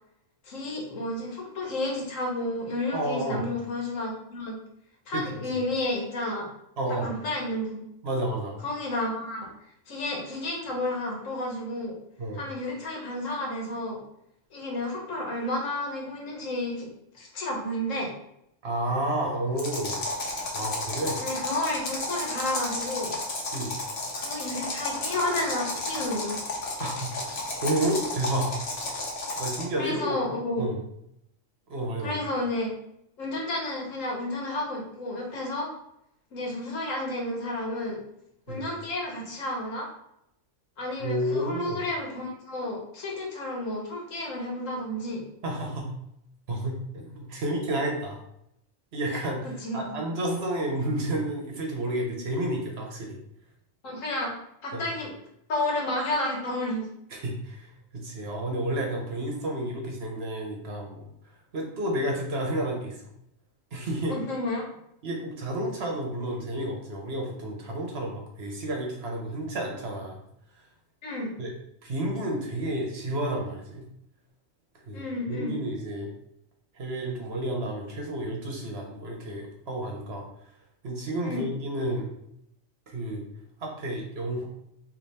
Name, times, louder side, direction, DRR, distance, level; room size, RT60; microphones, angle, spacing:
voice 1, 0.4-4.6 5.1-6.5 6.9-7.8 8.6-9.5 9.9-11.9 12.3-14.0 14.5-16.9 17.1-18.1 21.2-23.1 24.1-26.4 29.8-30.7 32.0-32.7 33.2-35.7 36.3-38.0 38.5-39.9 40.8-45.2 49.6-50.0 53.8-54.3 54.6-55.1 55.5-56.9 64.1-64.7 71.0-71.4 74.9-75.6 81.2-81.4, left 1 dB, 75° left, -1 dB, 1.4 m, -31 dB
voice 2, 2.9-3.4 5.1-5.2 6.8-7.1 8.0-8.6 12.2-12.4 18.6-20.0 20.5-21.2 23.5-23.7 26.8-27.1 27.6-28.6 29.4-30.2 30.6-30.8 31.7-32.2 38.5-38.7 41.0-41.8 45.4-45.9 46.5-48.2 48.9-53.2 54.7-54.8 57.1-61.1 61.5-63.1 63.7-64.2 65.0-70.2 71.4-71.5 71.8-73.9 74.9-76.1 76.7-80.2 80.8-82.1 82.9-83.2 83.6-84.5, right 1 dB, 55° right, 0 dB, 1.0 m, -31 dB
sound 1, 19.6-29.7, left 2 dB, 55° left, 1.1 m, -32 dB
3.4 x 2.6 x 4.1 m, 0.78 s
omnidirectional pair, 1.3 m